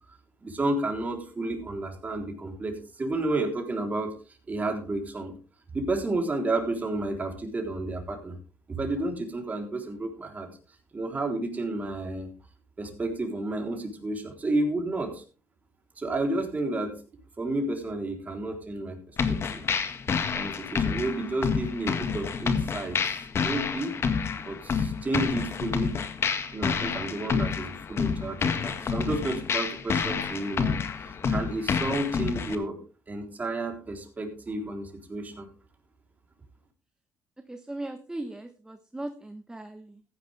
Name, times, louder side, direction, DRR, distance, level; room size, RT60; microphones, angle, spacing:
voice 1, 0.4-4.1 4.5-5.3 5.7-8.4 8.7-10.5 10.9-12.3 12.8-15.2 16.0-17.0 17.4-19.6 20.3-23.0 23.4-23.9 24.4-25.9 26.5-32.8 33.1-35.5, right 2 dB, 25° right, 3 dB, 3.8 m, -31 dB
sound 1, 19.2-32.5, left 6 dB, 45° left, 1.8 m, -29 dB
voice 2, 37.4-40.0, right 1 dB, 10° right, 7 dB, 1.2 m, -38 dB
15.0 x 10.5 x 3.5 m, 0.35 s
cardioid pair, 85°, 6 cm